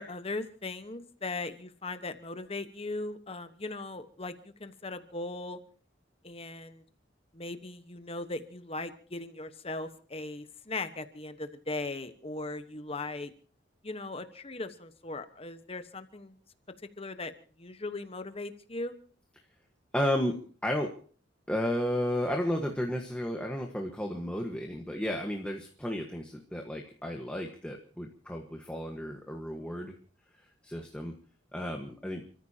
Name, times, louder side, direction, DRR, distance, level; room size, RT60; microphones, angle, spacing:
voice 1, 0.0-5.6 6.2-6.8 7.3-13.3 13.8-16.4 17.0-17.3 17.6-18.9, left 2 dB, 30° left, 9 dB, 1.2 m, -38 dB
voice 2, 19.9-20.9 21.5-29.9 30.6-31.1 31.5-32.2, left 1 dB, 5° left, 2 dB, 1.4 m, -33 dB
30.0 x 14.5 x 2.9 m, 0.41 s
head